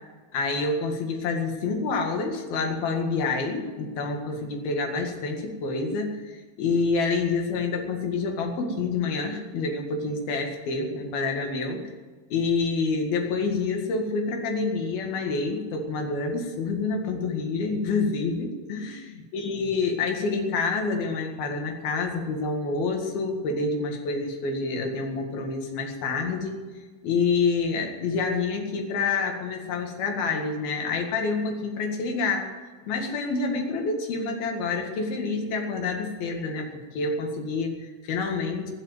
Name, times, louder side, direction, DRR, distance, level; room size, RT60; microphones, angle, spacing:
voice 1, 0.3-11.8 12.3-26.6 27.0-32.5 32.9-38.7, left 4 dB, 60° left, 3 dB, 3.5 m, -27 dB
20.5 x 7.4 x 9.5 m, 1.4 s
omnidirectional pair, 5.4 m